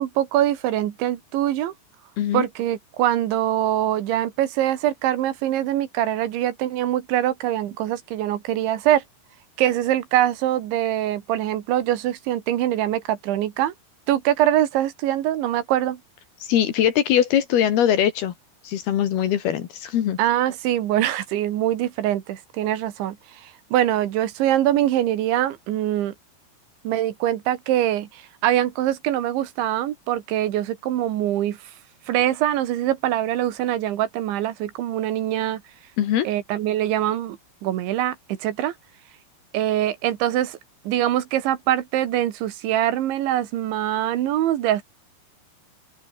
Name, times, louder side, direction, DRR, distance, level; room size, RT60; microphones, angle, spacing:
voice 1, 0.0-1.7 2.3-9.0 9.6-13.7 14.1-16.0 20.2-26.1 26.9-31.6 32.1-35.6 36.2-38.7 39.5-40.6 40.9-44.8, right 12 dB, 80° right, 4.0 m, -23 dB
voice 2, 16.4-18.3 18.6-20.2 36.0-36.3, left 10 dB, 65° left, 3.4 m, -21 dB
open air
omnidirectional pair, 5.3 m